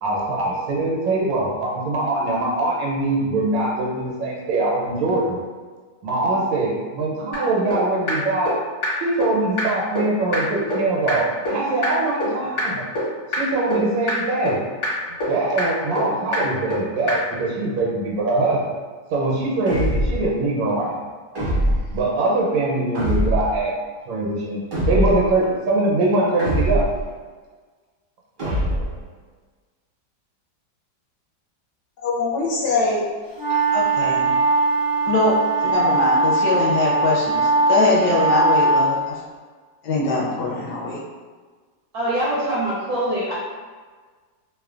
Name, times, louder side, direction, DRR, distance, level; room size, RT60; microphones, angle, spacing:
voice 1, 0.0-5.4 6.0-8.6 9.0-12.8 13.3-14.6 15.3-18.6 19.1-21.1 21.9-23.7 24.1-24.6 24.9-26.9, right 2 dB, 90° right, -3 dB, 1.4 m, -22 dB
sound 1, 7.3-7.4 7.7-7.8 8.1-8.2 8.5-8.6 8.8-8.9 9.2-9.3 9.6-9.7 10.0-10.1 10.3-10.4 10.7-10.8 11.1-11.2 11.5-11.6 11.8-11.9 12.2-12.3 12.6-12.7 13.0-13.1 13.3-13.4 13.7-13.8 14.1-14.2 14.5-14.6 14.8-14.9 15.2-15.3 15.6-15.7 16.0-16.1 16.3-16.4 16.7-16.8 17.1-17.2, left 2 dB, 50° left, 1.1 m, -23 dB
sound 2, 19.7-20.3 21.3-22.0 22.9-23.6 24.7-25.3 26.4-27.1 28.4-29.0, equal, 45° right, 0.6 m, -22 dB
voice 2, 32.0-33.0 33.5-34.3 35.1-39.2 39.8-41.0, left 3 dB, 70° left, -5 dB, 1.0 m, -22 dB
sound 3, 33.4-38.9, right 3 dB, 25° left, 0.4 m, -20 dB
voice 3, 41.9-43.4, right 1 dB, 70° right, -5 dB, 0.9 m, -23 dB
3.1 x 2.1 x 2.4 m, 1.5 s
omnidirectional pair, 2.0 m